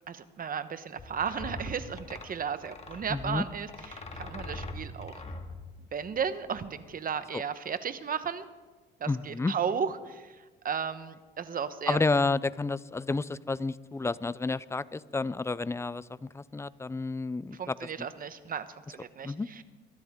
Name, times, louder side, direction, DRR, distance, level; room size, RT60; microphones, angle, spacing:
voice 1, 0.1-5.1 5.9-8.5 9.0-10.3 10.6-12.0 17.6-19.6, right 7 dB, 45° right, 12 dB, 1.0 m, -34 dB
sound 1, 1.0-6.8, left 2 dB, 35° left, 2.1 m, -42 dB
voice 2, 3.1-3.4 7.3-7.4 9.1-9.5 11.9-17.7 19.2-19.5, left 3 dB, 15° left, 18 dB, 0.4 m, -30 dB
23.0 x 13.0 x 3.7 m, 1.3 s
cardioid pair, 90°, 20 cm